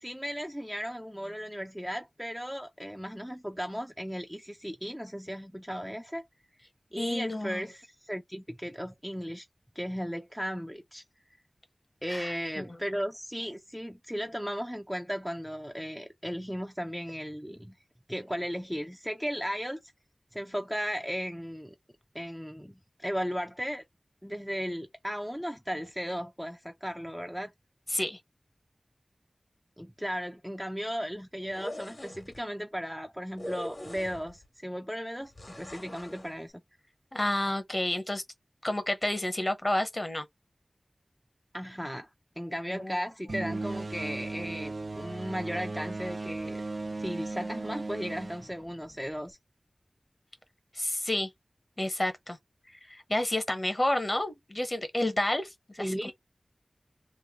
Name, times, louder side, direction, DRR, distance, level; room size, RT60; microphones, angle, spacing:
voice 1, 0.0-6.3 6.9-9.5 9.8-11.0 12.0-17.8 18.1-19.8 20.3-21.7 22.1-23.8 24.2-27.5 29.8-36.5 41.5-42.1 42.4-46.6 47.0-49.4 55.8-56.1, equal, ahead, 0.5 m, -36 dB
voice 2, 7.0-7.7 12.1-12.7 27.9-28.2 37.1-38.2 38.6-40.2 42.7-43.0 50.7-51.3 51.8-52.4 52.8-55.9, left 1 dB, 35° left, 1.0 m, -30 dB
sound 1, 31.4-32.4 33.4-34.5 35.4-36.3, left 1 dB, 55° left, 1.5 m, -41 dB
sound 2, 43.3-49.3, right 2 dB, 60° right, 0.4 m, -37 dB
3.3 x 2.3 x 3.5 m
wide cardioid pair, 55°, 0 cm